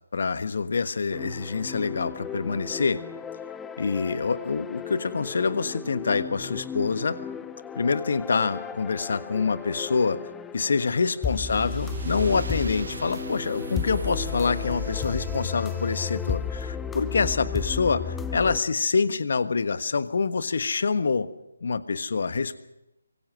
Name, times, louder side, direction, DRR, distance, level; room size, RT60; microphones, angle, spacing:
voice 1, 0.1-3.0 3.8-7.2 7.7-10.2 10.5-21.3 21.6-22.6, left 4 dB, 55° left, 12 dB, 1.4 m, -26 dB
sound 1, 1.1-18.6, left 7 dB, 10° left, 0.8 m, -34 dB
sound 2, 11.3-16.6, right 4 dB, 65° right, 1.3 m, -38 dB
24.5 x 22.5 x 6.3 m, 0.92 s
figure-of-eight pair, 150°, 0 cm